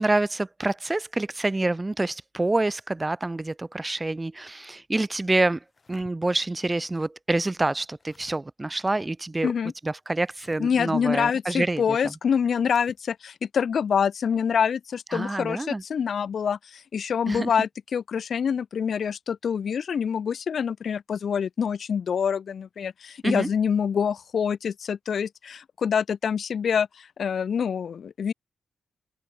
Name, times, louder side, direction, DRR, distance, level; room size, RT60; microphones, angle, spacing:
voice 1, 0.0-9.5 9.8-12.1 15.1-15.8 17.3-17.5 23.2-23.5, right 2 dB, 15° right, 0.6 m, -27 dB
sound 1, 5.6-6.1 7.6-8.4 10.2-10.6 12.6-13.0, left 4 dB, 30° left, 6.1 m, -54 dB
voice 2, 10.6-28.3, left 7 dB, 55° left, 0.6 m, -26 dB
cardioid pair, 115°, 0 cm